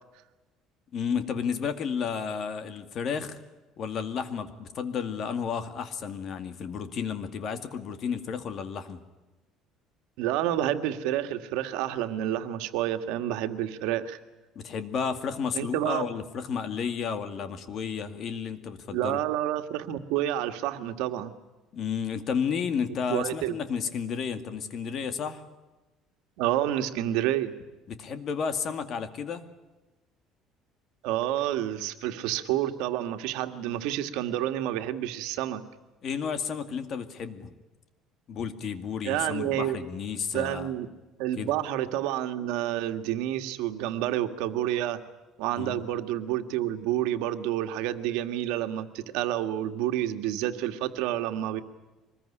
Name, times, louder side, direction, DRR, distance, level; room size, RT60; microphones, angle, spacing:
voice 1, 0.9-3.4 3.8-9.0 14.6-19.2 21.7-25.4 27.9-29.4 36.0-37.5 38.3-40.7 41.3-41.5 45.6-45.8, left 6 dB, 40° left, 9 dB, 2.2 m, -32 dB
voice 2, 10.2-14.2 15.5-16.1 18.9-21.3 23.1-23.6 26.4-27.5 31.0-35.6 39.0-39.8 40.3-40.9 41.2-45.0 45.4-51.6, right 12 dB, 90° right, 8 dB, 1.8 m, -29 dB
24.5 x 21.0 x 10.0 m, 1.1 s
cardioid pair, 160°, 0 cm